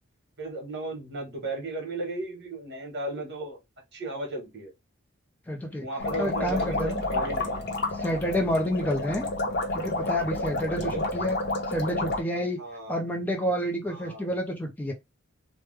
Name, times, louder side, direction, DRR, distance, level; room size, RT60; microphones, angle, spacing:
voice 1, 0.4-3.6 3.9-4.7 5.8-7.7 10.8-11.1 12.6-13.0 13.9-14.3, right 2 dB, 55° right, 1.4 m, -35 dB
voice 2, 5.5-5.9 6.2-7.2 8.0-9.3 9.7-11.4 11.7-12.6 12.9-14.9, equal, 10° left, 0.5 m, -29 dB
sound 1, 6.0-12.2, left 2 dB, 55° left, 0.8 m, -30 dB
3.2 x 2.1 x 3.2 m
head